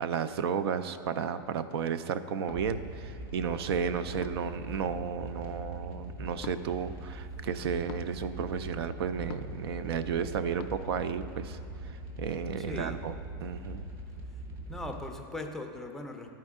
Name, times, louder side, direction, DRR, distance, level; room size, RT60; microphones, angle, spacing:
voice 1, 0.0-11.6 11.8-13.1 13.4-13.8, right 7 dB, 85° right, 12 dB, 0.4 m, -33 dB
sound 1, 2.5-2.6 4.2-4.5 6.4-6.6 7.9-8.1 9.3-9.6 10.6-10.7, left 11 dB, 80° left, 0.4 m, -44 dB
sound 2, 2.5-15.1, right 1 dB, 35° right, 1.0 m, -42 dB
voice 2, 12.6-13.0 14.7-16.3, left 2 dB, 5° left, 3 dB, 0.4 m, -39 dB
11.5 x 4.4 x 3.6 m, 2.6 s
supercardioid pair, 150°, 13 cm